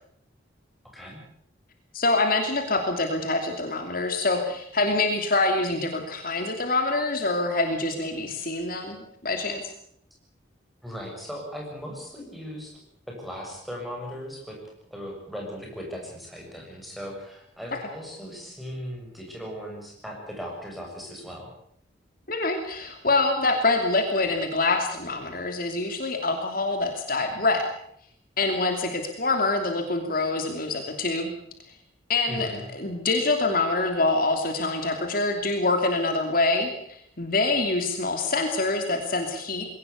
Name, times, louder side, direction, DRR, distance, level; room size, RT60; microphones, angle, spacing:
voice 1, 0.8-1.2 10.8-12.7 13.1-21.5 32.3-32.6, equal, ahead, 0 dB, 6.8 m, -38 dB
voice 2, 1.9-9.0 9.2-9.6 22.3-27.6 28.4-31.3 32.1-39.7, left 2 dB, 45° left, 4 dB, 2.8 m, -25 dB
21.5 x 18.5 x 8.2 m, 0.69 s
head